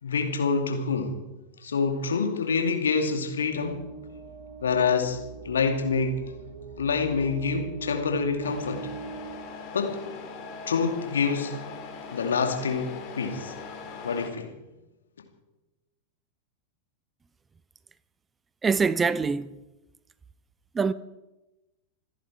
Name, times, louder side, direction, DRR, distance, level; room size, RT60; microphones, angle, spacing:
voice 1, 0.0-1.2 1.6-3.8 4.6-5.2 5.4-6.2 6.8-8.9 9.7-10.0 10.7-11.6 12.1-13.5 14.0-14.5, left 5 dB, 70° left, 2.5 m, -26 dB
sound 1, 3.4-10.3, right 5 dB, 50° right, 4.5 m, -42 dB
Truck, 8.4-14.3, left 5 dB, 40° left, 3.2 m, -41 dB
voice 2, 18.6-19.5 20.7-20.9, right 5 dB, 15° right, 0.6 m, -24 dB
26.5 x 11.0 x 4.6 m
figure-of-eight pair, 90°, 0 cm